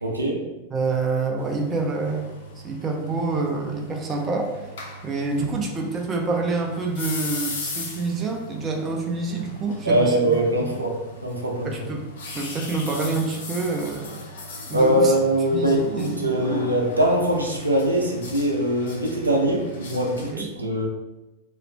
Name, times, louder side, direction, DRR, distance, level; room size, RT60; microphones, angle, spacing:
voice 1, 0.0-0.4 9.8-11.0 11.2-11.9 14.7-20.9, right 1 dB, 85° right, -1 dB, 0.5 m, -22 dB
voice 2, 0.7-4.7 5.0-10.7 11.6-12.0 12.3-14.2 14.7-15.1 15.5-16.6 20.2-20.5, right 3 dB, 25° right, 1 dB, 0.5 m, -27 dB
sound 1, 1.4-20.3, left 1 dB, 60° left, 0.6 m, -38 dB
3.0 x 2.4 x 3.2 m, 1.0 s
figure-of-eight pair, 90°, 0 cm